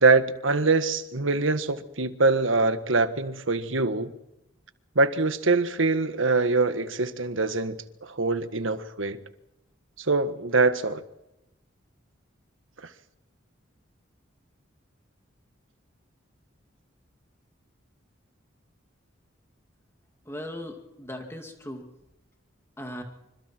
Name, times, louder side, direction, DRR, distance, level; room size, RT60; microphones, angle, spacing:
voice 1, 0.0-4.1 4.9-9.2 10.0-11.0, right 3 dB, 80° right, 1.6 m, -24 dB
voice 2, 20.3-21.9 22.8-23.0, left 1 dB, 15° left, 2.4 m, -38 dB
26.5 x 26.0 x 4.5 m
head